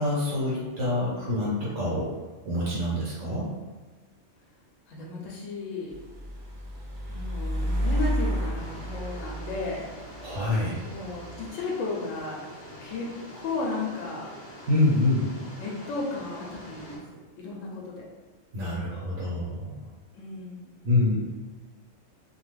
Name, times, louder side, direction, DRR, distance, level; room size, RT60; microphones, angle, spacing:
voice 1, 0.0-2.1 2.4-3.5 10.2-10.7 14.7-15.3 18.5-19.8 20.8-21.2, left 2 dB, 80° right, -8 dB, 1.3 m, -26 dB
voice 2, 4.9-5.9 7.1-9.9 10.8-12.4 12.8-14.3 15.6-18.0 20.1-20.8, left 3 dB, 85° left, -3 dB, 1.0 m, -34 dB
sound 1, 5.9-11.5, equal, 60° right, 0.5 m, -32 dB
sound 2, 8.5-17.0, left 1 dB, 35° left, 0.4 m, -45 dB
2.6 x 2.3 x 3.2 m, 1.3 s
omnidirectional pair, 1.3 m